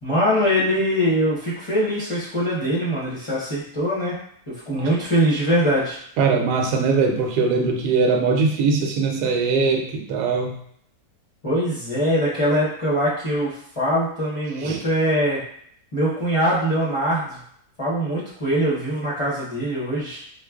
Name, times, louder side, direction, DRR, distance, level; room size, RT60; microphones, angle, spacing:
voice 1, 0.0-4.2 4.5-6.0 11.4-15.4 15.9-17.4 17.8-20.2, equal, 30° left, -8 dB, 0.6 m, -22 dB
voice 2, 6.2-10.5 14.6-14.8, right 4 dB, 80° right, 2 dB, 1.1 m, -21 dB
4.2 x 2.4 x 2.3 m, 0.66 s
omnidirectional pair, 1.7 m